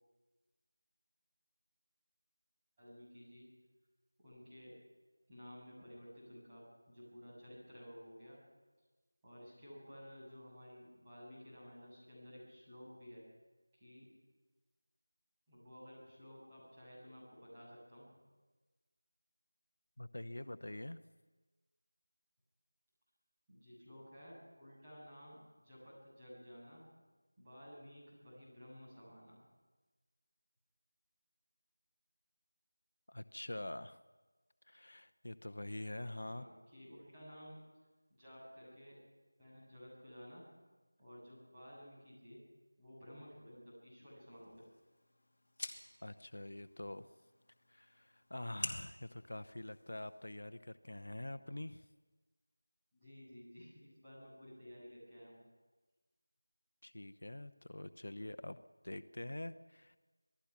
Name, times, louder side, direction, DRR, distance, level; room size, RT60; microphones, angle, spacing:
voice 1, 2.8-3.4 4.2-4.7 5.3-8.4 9.2-13.2 13.7-14.1 15.5-18.1 23.5-26.8 27.4-29.5 36.2-37.6 38.1-39.0 39.4-40.4 41.0-42.4 42.8-44.6 52.9-55.4, equal, 10° right, -9 dB, 7.4 m, -54 dB
voice 2, 20.0-21.0 33.1-34.0 34.7-36.5 46.0-47.1 47.7-51.9 56.8-60.0, left 1 dB, 60° left, 12 dB, 0.8 m, -45 dB
sound 1, 44.3-50.3, left 1 dB, 40° left, 2.8 m, -50 dB
26.5 x 19.5 x 6.1 m, 1.3 s
figure-of-eight pair, 175°, 0 cm